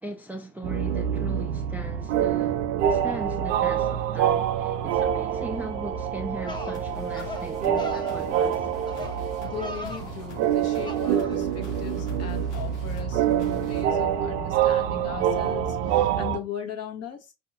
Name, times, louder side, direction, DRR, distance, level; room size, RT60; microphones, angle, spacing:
voice 1, 0.0-8.7, right 2 dB, 5° right, 0.5 m, -38 dB
sound 1, 0.6-16.4, right 9 dB, 75° right, 0.6 m, -26 dB
sound 2, 5.9-6.0 6.4-6.8 7.1-7.5 7.8-8.1 8.9-9.2 9.4-10.1 10.8-11.4, left 2 dB, 15° left, 0.9 m, -38 dB
sound 3, 6.7-13.8, left 3 dB, 75° left, 0.8 m, -44 dB
voice 2, 9.4-17.3, left 8 dB, 45° left, 1.0 m, -38 dB
4.6 x 2.7 x 2.5 m
hypercardioid pair, 60°, 35 cm